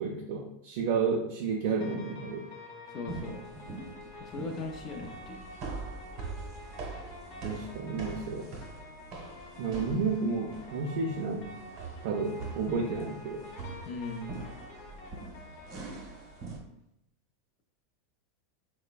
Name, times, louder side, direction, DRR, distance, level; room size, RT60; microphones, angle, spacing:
voice 1, 0.0-2.5 7.4-8.5 9.6-11.5 12.0-13.4, right 4 dB, 65° right, 0 dB, 0.3 m, -31 dB
sound 1, 1.8-16.5, left 2 dB, 70° left, 0.7 m, -48 dB
voice 2, 2.9-3.4 4.2-5.6 13.9-14.3, left 3 dB, 40° left, 4 dB, 0.4 m, -39 dB
sound 2, 3.1-16.6, right 3 dB, 50° right, 0.8 m, -43 dB
3.1 x 2.0 x 2.2 m, 0.81 s
supercardioid pair, 125°, 0 cm